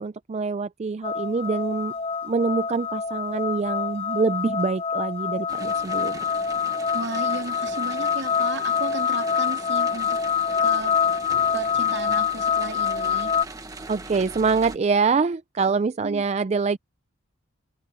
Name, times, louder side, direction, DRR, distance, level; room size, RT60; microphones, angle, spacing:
voice 1, 0.0-1.9 2.2-6.2 13.9-16.8, right 4 dB, 35° right, 0.4 m, -25 dB
sound 1, 1.0-13.4, left 6 dB, 30° left, 0.6 m, -25 dB
sound 2, 5.5-14.8, right 3 dB, 20° right, 1.3 m, -40 dB
voice 2, 6.9-10.2 10.6-10.9 11.5-13.3 16.0-16.2, right 2 dB, 60° right, 2.7 m, -34 dB
head